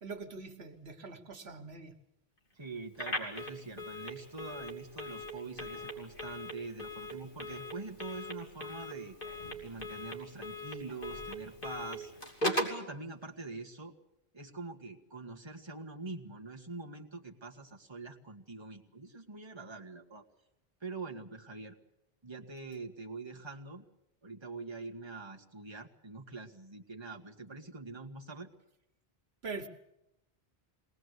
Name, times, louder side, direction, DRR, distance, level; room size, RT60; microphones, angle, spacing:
voice 1, 0.0-1.9 29.4-29.7, right 4 dB, 80° right, 7 dB, 1.7 m, -43 dB
voice 2, 2.5-9.2 9.6-12.1 12.4-13.9 14.3-20.2 20.8-21.8 22.2-23.8 24.2-28.5, right 3 dB, 25° right, 1 dB, 1.6 m, -44 dB
Telephone, 2.9-12.8, left 1 dB, 55° left, 3.2 m, -39 dB
22.5 x 18.5 x 8.1 m, 0.85 s
omnidirectional pair, 1.1 m